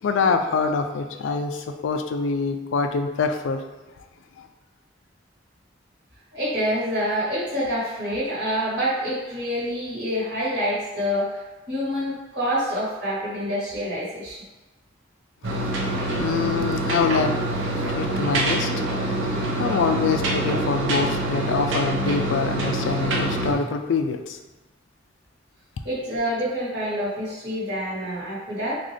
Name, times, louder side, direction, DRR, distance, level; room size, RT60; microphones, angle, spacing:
voice 1, 0.0-3.6 4.4-4.5 15.4-15.8 16.0-17.4 17.9-24.4, left 4 dB, 75° left, 7 dB, 0.3 m, -25 dB
voice 2, 6.3-14.4 25.8-28.8, equal, 60° right, -9 dB, 1.4 m, -27 dB
sound 1, 15.4-23.5, right 1 dB, 80° right, 0.6 m, -25 dB
3.8 x 2.3 x 3.2 m, 1.1 s
head